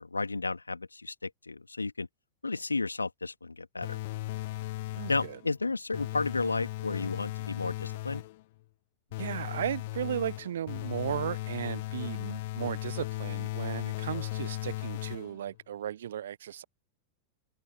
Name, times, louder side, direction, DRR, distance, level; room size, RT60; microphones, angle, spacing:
voice 1, 0.0-2.1 2.4-4.0 5.1-8.2, left 3 dB, 80° left, 2.3 m, -33 dB
sound 1, 3.8-5.5 5.9-8.4 9.1-15.5, left 19 dB, 50° left, 0.4 m, -36 dB
voice 2, 4.9-5.4 9.2-16.6, right 10 dB, 60° right, 0.6 m, -35 dB
figure-of-eight pair, 90°, 0 cm